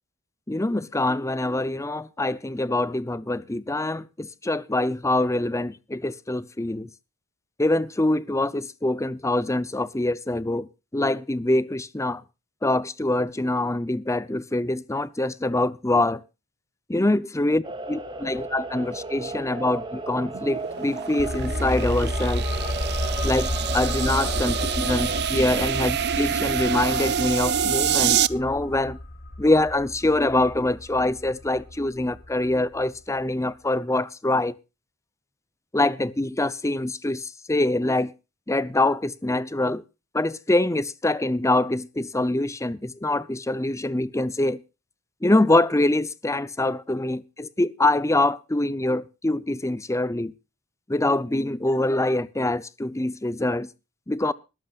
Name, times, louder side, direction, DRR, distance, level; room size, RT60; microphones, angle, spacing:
voice 1, 0.5-6.9 7.6-10.7 10.9-12.2 12.6-16.2 16.9-17.6 17.9-22.4 23.2-29.0 29.4-34.5 35.7-38.1 38.5-39.8 40.1-44.6 45.2-50.3 50.9-53.7 54.1-54.3, left 2 dB, 15° left, 0.7 m, -24 dB
sound 1, 17.6-25.2, right 2 dB, 25° right, 2.8 m, -35 dB
sound 2, 20.3-28.3, right 8 dB, 55° right, 0.6 m, -27 dB
sound 3, 21.2-32.6 32.8-32.9, left 1 dB, 50° left, 1.6 m, -31 dB
21.0 x 13.5 x 2.5 m
head